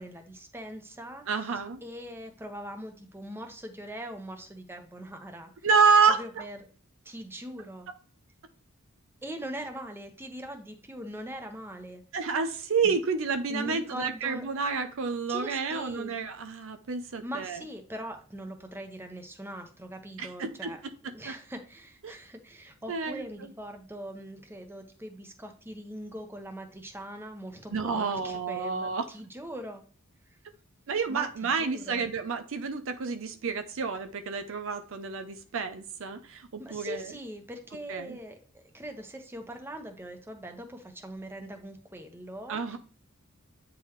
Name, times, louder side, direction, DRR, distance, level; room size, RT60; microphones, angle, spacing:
voice 1, 0.0-5.7 6.1-6.6 7.0-7.9 9.2-12.0 12.8-12.9 13.5-14.5 15.3-16.1 17.2-20.8 21.0-29.8 30.2-30.4 31.1-32.0 36.6-42.8, equal, 10° right, 4 dB, 0.9 m, -41 dB
voice 2, 1.3-1.8 5.6-6.2 12.1-17.6 20.2-20.7 21.3-21.4 22.0-22.1 22.9-23.2 27.7-29.1 30.9-37.1 37.9-38.2 42.5-42.8, right 5 dB, 65° right, 8 dB, 0.6 m, -29 dB
8.9 x 3.9 x 3.1 m, 0.40 s
head